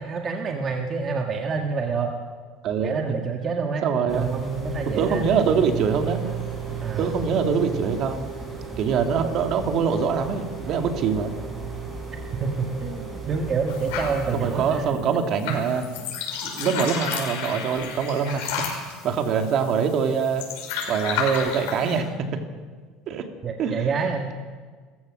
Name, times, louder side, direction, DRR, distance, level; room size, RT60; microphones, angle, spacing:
voice 1, 0.0-2.2 2.8-3.8 4.1-5.3 6.8-7.1 12.4-15.0 16.6-16.9 23.4-24.3, right 4 dB, 30° right, 2 dB, 1.7 m, -27 dB
voice 2, 3.8-4.3 5.0-6.3 7.0-8.3 8.8-11.3 14.3-15.9 16.4-20.5 20.9-22.4 23.1-23.3 23.6-23.9, right 6 dB, 50° right, 5 dB, 2.3 m, -24 dB
sound 1, 4.1-14.9, right 6 dB, 10° right, 7.7 m, -34 dB
sound 2, 13.7-22.0, left 6 dB, 85° left, 5.8 m, -32 dB
28.0 x 15.0 x 6.4 m, 1.5 s
cardioid pair, 135°, 0 cm